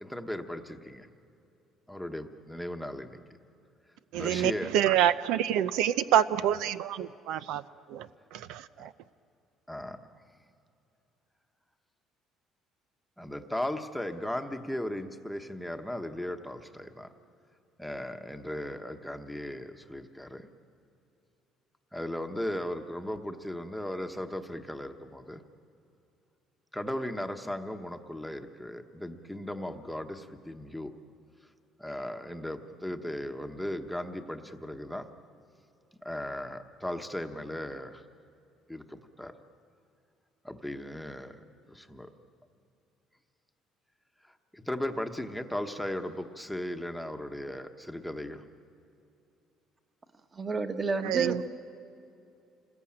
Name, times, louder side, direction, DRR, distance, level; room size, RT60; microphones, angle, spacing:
voice 1, 0.0-1.1 1.9-3.2 4.1-4.7 9.7-10.0 13.2-17.1 17.8-20.5 21.9-25.4 26.7-30.9 31.8-35.1 36.0-38.0 38.7-39.3 40.4-41.4 41.7-42.1 44.5-48.4, left 1 dB, ahead, 5 dB, 1.1 m, -37 dB
voice 2, 4.1-7.6 7.9-8.9 51.0-51.4, right 10 dB, 85° right, 13 dB, 0.6 m, -27 dB
voice 3, 50.3-51.5, right 3 dB, 20° right, 7 dB, 1.3 m, -30 dB
28.0 x 20.5 x 8.7 m, 2.8 s
cardioid pair, 150°, 0 cm